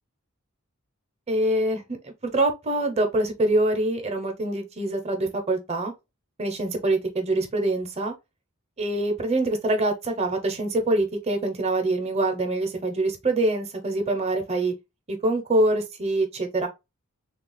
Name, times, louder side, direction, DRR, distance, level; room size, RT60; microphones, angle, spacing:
voice 1, 1.3-5.9 6.4-8.1 8.8-14.7 15.1-16.7, right 2 dB, 30° right, 0.8 m, -25 dB
3.3 x 2.4 x 3.8 m
head